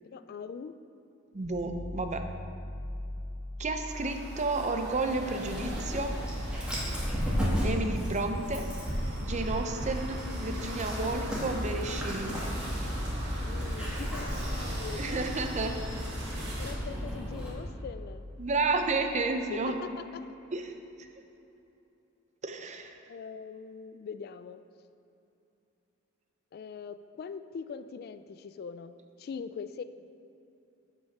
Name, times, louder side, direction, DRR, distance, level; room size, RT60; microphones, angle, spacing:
voice 1, 0.1-0.7 13.4-15.8 16.6-18.3 19.5-20.2 23.1-24.6 26.5-29.8, left 6 dB, 50° left, 11 dB, 0.3 m, -42 dB
voice 2, 1.3-2.2 3.6-6.1 7.6-8.7 9.2-12.4 14.9-15.8 18.4-19.8 20.5-20.7 21.0-21.1 22.4-23.0, right 3 dB, 35° right, 6 dB, 0.6 m, -31 dB
sound 1, 1.4-19.4, equal, 80° left, 1.7 m, -41 dB
sound 2, 3.9-16.7, right 1 dB, 55° right, 1.8 m, -41 dB
Dog, 5.4-17.5, equal, 5° right, 2.0 m, -35 dB
9.1 x 5.5 x 5.9 m, 2.8 s
head